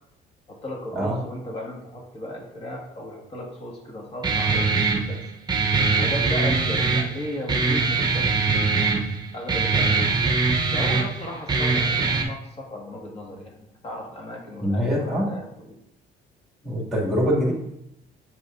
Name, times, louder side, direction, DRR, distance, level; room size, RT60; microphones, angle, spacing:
voice 1, 0.5-5.3 6.0-9.0 9.3-10.3 10.7-15.8, left 1 dB, 35° left, -1 dB, 1.8 m, -36 dB
Guitar, 4.2-12.2, right 4 dB, 25° right, 0.9 m, -22 dB
voice 2, 14.6-15.3 16.6-17.5, equal, ahead, -6 dB, 2.3 m, -23 dB
7.7 x 4.8 x 2.6 m, 0.81 s
cardioid pair, 110°, 17 cm